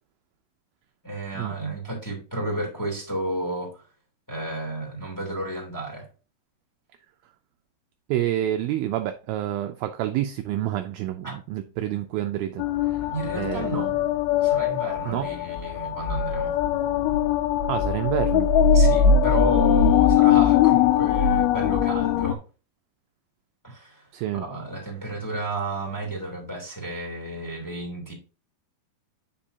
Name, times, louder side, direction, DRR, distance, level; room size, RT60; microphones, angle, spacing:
voice 1, 1.0-3.8 4.3-6.1 11.2-11.4 13.1-13.9 14.4-16.6 18.7-22.4 23.6-24.1 24.3-28.1, right 1 dB, 5° left, 1.9 m, -32 dB
voice 2, 8.1-13.1 13.4-13.9 15.1-15.3 17.7-18.5 24.1-24.4, right 13 dB, 85° right, 2.2 m, -28 dB
sound 1, 12.6-22.4, left 8 dB, 85° left, 2.2 m, -21 dB
8.5 x 5.3 x 2.7 m
omnidirectional pair, 4.8 m